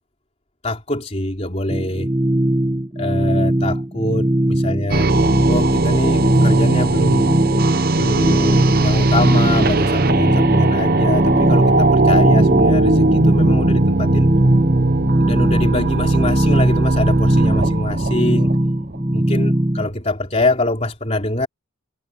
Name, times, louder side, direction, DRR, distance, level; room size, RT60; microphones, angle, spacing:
voice 1, 0.6-2.1 3.0-5.1 5.5-7.3 7.9-14.3 15.2-18.5 19.1-21.5, left 2 dB, 30° left, 3.7 m, -24 dB
sound 1, 1.7-19.9, right 1 dB, 20° right, 1.7 m, -20 dB
sound 2, 4.9-19.0, right 2 dB, 45° right, 0.9 m, -18 dB
head